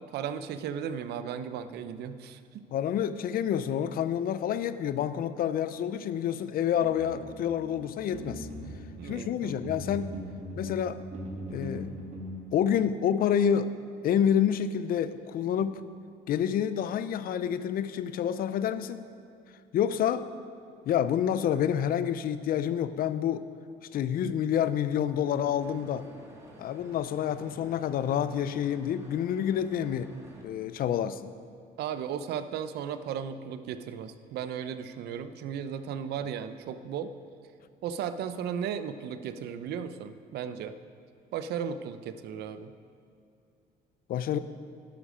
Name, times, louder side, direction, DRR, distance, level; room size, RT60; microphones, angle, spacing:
voice 1, 0.1-2.7 8.9-9.6 15.6-15.7 31.8-37.2 37.8-40.8 41.3-42.7, right 8 dB, 75° right, 11 dB, 0.7 m, -35 dB
voice 2, 2.7-8.5 9.0-10.1 10.6-11.0 11.5-11.9 12.5-13.7 14.0-15.8 16.3-19.1 19.7-20.3 20.9-23.5 23.9-26.1 26.6-30.1 30.4-31.3 44.1-44.4, left 9 dB, 60° left, 13 dB, 0.6 m, -28 dB
sound 1, 6.8-12.4, equal, 45° right, 2.2 m, -40 dB
sound 2, 25.4-30.4, right 1 dB, 15° right, 2.4 m, -52 dB
12.0 x 11.5 x 5.1 m, 2.6 s
cardioid pair, 110°, 17 cm